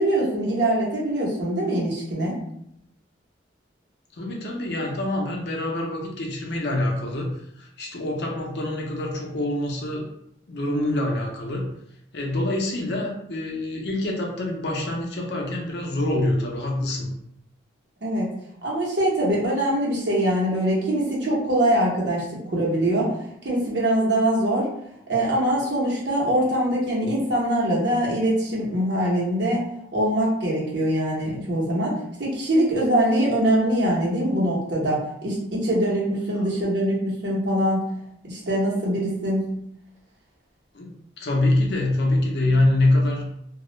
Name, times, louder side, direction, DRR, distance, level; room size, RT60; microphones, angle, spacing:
voice 1, 0.0-2.4 18.0-18.3 18.6-23.1 23.4-24.7 25.1-29.6 29.9-37.8 38.2-39.4, right 1 dB, 65° right, -5 dB, 0.9 m, -23 dB
voice 2, 4.2-10.1 10.5-11.7 12.1-17.1 36.3-36.4 40.7-43.3, left 1 dB, 60° left, 0 dB, 0.5 m, -25 dB
2.3 x 2.0 x 3.0 m, 0.74 s
head